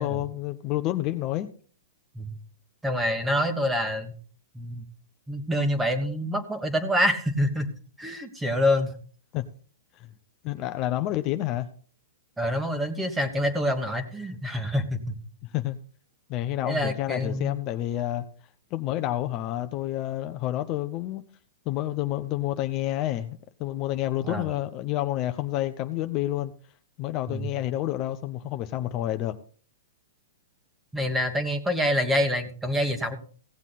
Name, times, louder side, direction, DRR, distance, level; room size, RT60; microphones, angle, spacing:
voice 1, 0.0-1.5 9.3-9.5 10.0-10.1 10.4-11.7 15.4-15.8 16.3-18.2 18.7-21.2 21.7-26.5 27.0-29.3, left 14 dB, 35° left, 8 dB, 0.7 m, -29 dB
voice 2, 2.8-4.1 4.5-4.8 5.3-7.7 8.0-8.9 12.4-15.0 16.6-17.6 24.2-24.5 27.3-27.4 30.9-33.2, equal, 5° right, 8 dB, 1.4 m, -26 dB
16.5 x 7.3 x 4.1 m, 0.43 s
hypercardioid pair, 140°, 0 cm